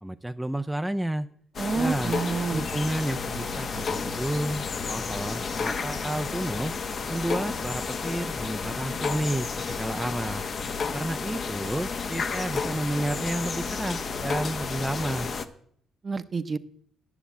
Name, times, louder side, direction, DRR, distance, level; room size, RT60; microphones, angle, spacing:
voice 1, 0.0-1.3 1.7-2.1 2.5-6.7 7.1-10.4 10.9-15.3, right 1 dB, 5° right, 7 dB, 0.5 m, -31 dB
sound 1, 1.5-15.5, left 5 dB, 45° left, 0.9 m, -31 dB
voice 2, 1.6-2.7 16.0-16.6, right 4 dB, 35° right, 13 dB, 0.8 m, -28 dB
10.0 x 7.0 x 8.4 m, 0.62 s
cardioid pair, 90°, 0 cm